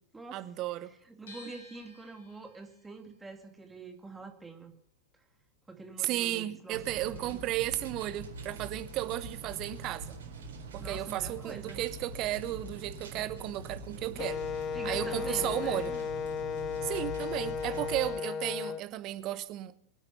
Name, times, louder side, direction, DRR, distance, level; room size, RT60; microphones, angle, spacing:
voice 1, 0.3-0.9 6.0-10.2 10.7-14.4 14.8-15.9 16.8-19.9, right 15 dB, 40° right, 12 dB, 1.1 m, -34 dB
voice 2, 1.0-4.7 5.7-7.4 10.8-11.8 14.7-16.0, right 3 dB, 10° right, 4 dB, 2.3 m, -46 dB
sound 1, 1.3-7.3 7.6-8.9, left 2 dB, 60° left, 6.4 m, -57 dB
sound 2, 6.7-18.1, right 2 dB, 65° right, 4.5 m, -44 dB
Wind instrument woodwind instrument, 14.2-18.8, left 6 dB, 30° left, 0.6 m, -35 dB
24.5 x 8.9 x 5.8 m, 0.65 s
figure-of-eight pair, 90°, 0 cm